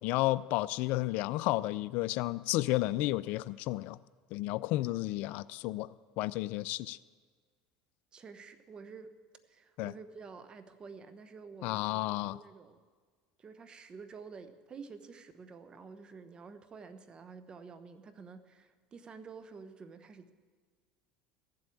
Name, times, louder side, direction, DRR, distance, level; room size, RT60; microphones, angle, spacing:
voice 1, 0.0-4.0 4.3-5.9 6.2-7.0 9.8-9.9 11.6-12.4, left 18 dB, 65° left, 19 dB, 0.4 m, -32 dB
voice 2, 8.1-9.2 9.4-12.8 13.4-20.3, right 5 dB, 30° right, 10 dB, 1.1 m, -50 dB
15.0 x 7.8 x 8.5 m, 1.5 s
supercardioid pair, 95°, 3 cm